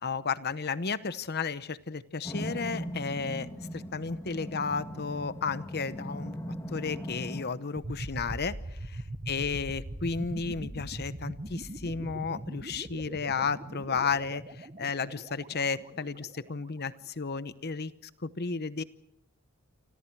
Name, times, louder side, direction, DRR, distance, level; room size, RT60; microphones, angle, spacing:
voice 1, 0.0-6.3 6.7-8.6 8.9-17.9 18.2-18.8, left 5 dB, 50° left, 14 dB, 0.9 m, -33 dB
sound 1, 2.2-7.4, equal, 15° left, 2.9 m, -39 dB
sound 2, 7.8-16.6, right 1 dB, 30° right, 1.3 m, -41 dB
28.5 x 26.0 x 4.7 m, 0.69 s
head